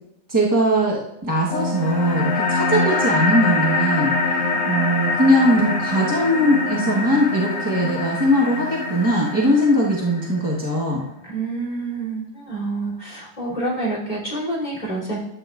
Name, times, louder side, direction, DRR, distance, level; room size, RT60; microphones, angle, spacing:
voice 1, 0.3-4.4 4.7-11.0, equal, 15° right, -5 dB, 0.8 m, -20 dB
sound 1, 1.5-10.5, left 3 dB, 50° left, 1.2 m, -24 dB
voice 2, 11.3-15.2, right 2 dB, 20° left, -4 dB, 3.2 m, -27 dB
12.5 x 8.8 x 2.5 m, 0.84 s
omnidirectional pair, 2.0 m